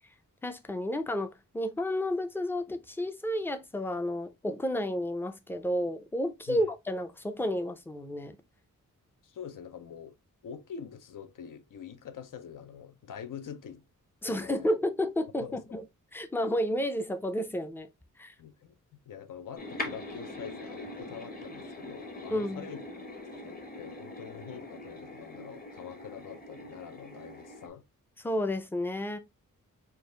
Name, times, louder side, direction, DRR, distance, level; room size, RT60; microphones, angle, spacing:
voice 1, 0.4-8.4 14.2-15.8 16.1-17.9 18.2-18.3 22.3-22.7 28.2-29.2, left 1 dB, 5° left, 0.4 m, -31 dB
voice 2, 9.2-10.2 10.4-13.8 14.3-14.7 15.4-15.8 18.4-18.8 19.1-23.0 23.3-27.8, left 8 dB, 75° left, 0.6 m, -45 dB
sound 1, 19.6-27.7, left 2 dB, 30° left, 0.9 m, -42 dB
4.6 x 2.4 x 3.2 m
wide cardioid pair, 160°, 32 cm